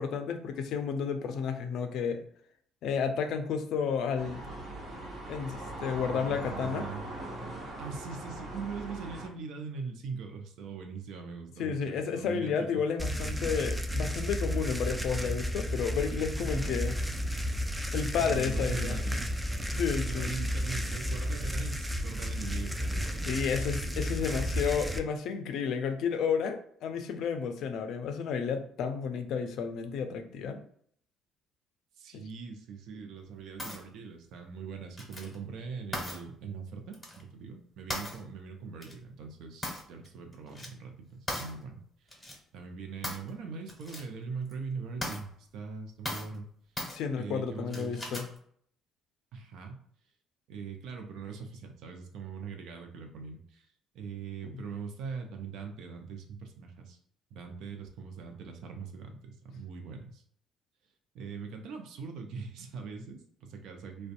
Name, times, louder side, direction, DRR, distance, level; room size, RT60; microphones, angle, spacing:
voice 1, 0.0-2.2 2.8-4.4 5.3-6.9 11.6-17.0 17.9-19.0 19.7-20.4 23.3-30.6 32.1-32.2 46.9-48.3 54.4-54.6, left 6 dB, 70° left, 7 dB, 0.4 m, -32 dB
sound 1, 4.2-9.3, right 1 dB, 55° right, 0.9 m, -41 dB
voice 2, 6.1-7.0 7.8-12.8 14.6-14.7 16.4-16.8 18.2-19.3 20.0-23.4 23.8-24.5 32.0-42.2 42.5-46.5 47.2-48.2 49.3-49.8 50.5-53.7 53.9-57.0 57.3-60.2 61.1-64.1, right 5 dB, 70° right, 4 dB, 0.5 m, -41 dB
sound 2, 13.0-25.0, equal, 10° right, 0.4 m, -32 dB
sound 3, 33.6-33.8 35.0-35.4 35.9-36.2 36.9-37.2 37.9-38.2 38.8-38.9 39.6-40.1 40.3-40.7 41.3-41.5 42.1-42.4 43.0-43.3 43.7-44.0 44.5-44.6 45.0-45.2 46.1-46.4 46.8-47.0 47.7-48.4, left 1 dB, 15° left, 1.3 m, -37 dB
2.5 x 2.2 x 2.5 m, 0.63 s
hypercardioid pair, 60°, 0 cm